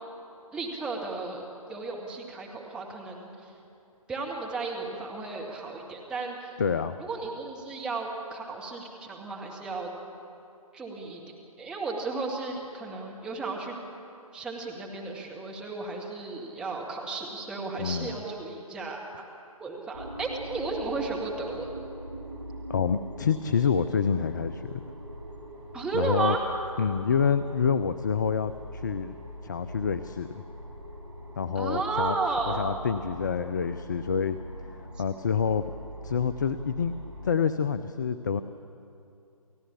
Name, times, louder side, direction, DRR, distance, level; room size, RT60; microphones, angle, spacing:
voice 1, 0.5-3.5 4.1-6.6 7.0-9.9 10.7-11.2 11.6-13.8 14.3-19.0 19.6-21.7 25.7-26.4 31.6-32.6, right 3 dB, 5° right, -1 dB, 1.9 m, -33 dB
voice 2, 6.6-7.0 17.8-18.1 22.7-24.9 25.9-26.4 26.8-29.1 29.4-30.3 31.4-32.1 32.5-34.4 35.0-35.6 36.0-36.9 37.2-38.4, left 6 dB, 30° left, 13 dB, 0.6 m, -27 dB
sound 1, 19.9-37.3, equal, 55° right, 4.7 m, -42 dB
29.5 x 15.5 x 8.5 m, 2.7 s
figure-of-eight pair, 145°, 19 cm